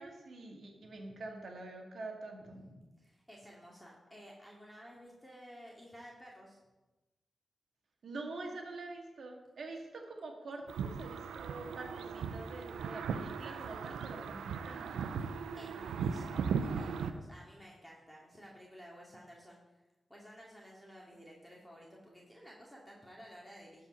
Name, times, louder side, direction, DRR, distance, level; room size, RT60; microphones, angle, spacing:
voice 1, 0.0-2.6 8.0-15.0, right 2 dB, 70° right, 2 dB, 1.9 m, -46 dB
voice 2, 0.8-1.2 2.4-6.6 15.6-19.8 20.1-23.9, equal, 5° left, -4 dB, 2.3 m, -54 dB
sound 1, 10.7-17.1, right 6 dB, 90° right, 0.4 m, -38 dB
12.0 x 4.8 x 5.4 m, 1.1 s
supercardioid pair, 45°, 0 cm